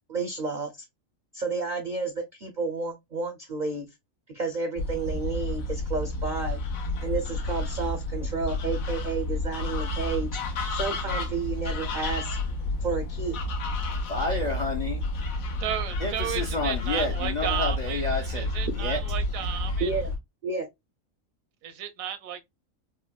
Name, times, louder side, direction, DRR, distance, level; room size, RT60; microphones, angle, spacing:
voice 1, 0.1-0.9 1.3-3.9 4.3-6.6 7.0-10.4 10.7-12.4 12.8-13.4 19.8-20.1 20.4-20.7, right 4 dB, 65° right, 0.4 m, -31 dB
sound 1, 4.8-20.2, left 2 dB, 90° left, 1.2 m, -30 dB
voice 2, 14.1-15.0 16.0-19.0 19.5-19.6, left 3 dB, 60° left, 0.4 m, -30 dB
voice 3, 15.6-18.0 18.3-19.9 21.6-22.4, right 9 dB, 80° right, 1.0 m, -33 dB
3.9 x 2.1 x 2.2 m
omnidirectional pair, 1.4 m